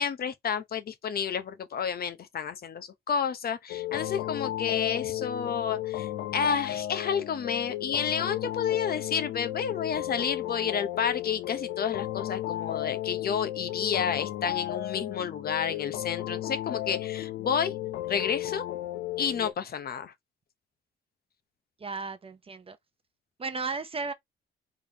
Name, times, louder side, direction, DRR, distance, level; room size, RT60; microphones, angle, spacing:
voice 1, 0.0-17.7 18.0-18.6 19.2-20.1, left 7 dB, 50° left, 0.8 m, -30 dB
sound 1, 3.7-19.5, left 14 dB, 75° left, 0.5 m, -34 dB
voice 2, 21.8-22.8 23.4-24.1, right 4 dB, 30° right, 0.8 m, -34 dB
3.6 x 3.5 x 2.9 m
cardioid pair, 90°, 20 cm